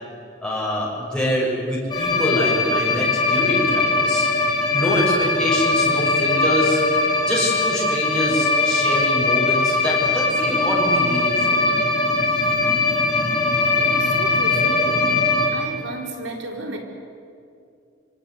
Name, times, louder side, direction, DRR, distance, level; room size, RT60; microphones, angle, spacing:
voice 1, 0.4-4.3 4.7-6.8 7.2-11.6, left 1 dB, 5° left, -5 dB, 6.1 m, -25 dB
sound 1, 1.9-15.5, left 3 dB, 25° left, 4.4 m, -20 dB
voice 2, 13.8-16.8, right 2 dB, 80° right, 2 dB, 4.2 m, -33 dB
26.0 x 25.5 x 8.0 m, 2.5 s
head